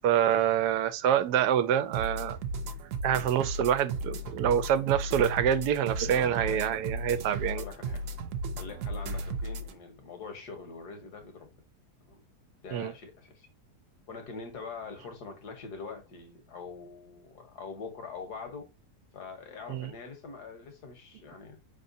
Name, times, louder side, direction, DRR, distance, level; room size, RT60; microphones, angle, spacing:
voice 1, 0.0-2.4 3.0-7.6 12.7-12.9 19.7-19.9, right 9 dB, 85° right, 1.1 m, -26 dB
sound 1, 1.9-9.7, right 2 dB, 65° right, 0.9 m, -35 dB
voice 2, 6.1-6.7 7.6-8.0 8.6-11.5 12.0-12.2 12.6-13.5 14.1-18.7 19.1-21.6, left 4 dB, 80° left, 1.7 m, -43 dB
5.4 x 3.5 x 2.6 m
omnidirectional pair, 1.7 m